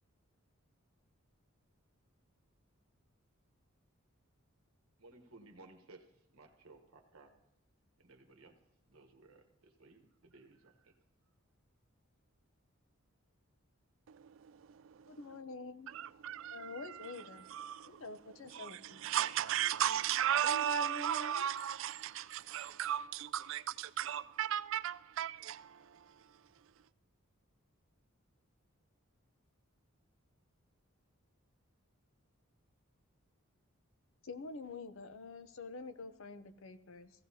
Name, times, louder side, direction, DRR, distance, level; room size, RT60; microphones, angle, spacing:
voice 1, 5.0-7.3 8.0-8.6 8.9-11.0, right 2 dB, 80° right, 1.1 m, -59 dB
voice 2, 14.1-15.4 15.9-18.2 18.4-26.7, right 10 dB, 60° right, 0.3 m, -37 dB
voice 3, 15.1-15.9 16.5-17.5 17.9-19.0 20.4-21.5 34.2-37.1, left 3 dB, 65° left, 0.6 m, -46 dB
16.0 x 15.5 x 2.8 m
head